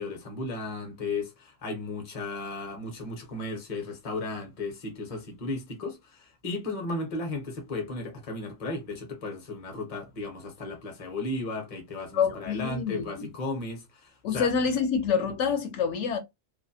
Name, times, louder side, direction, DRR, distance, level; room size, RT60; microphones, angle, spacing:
voice 1, 0.0-14.5, left 2 dB, 35° left, 0.7 m, -35 dB
voice 2, 12.1-13.3 14.2-16.2, left 6 dB, 75° left, 0.9 m, -27 dB
2.4 x 2.0 x 2.6 m
omnidirectional pair, 1.3 m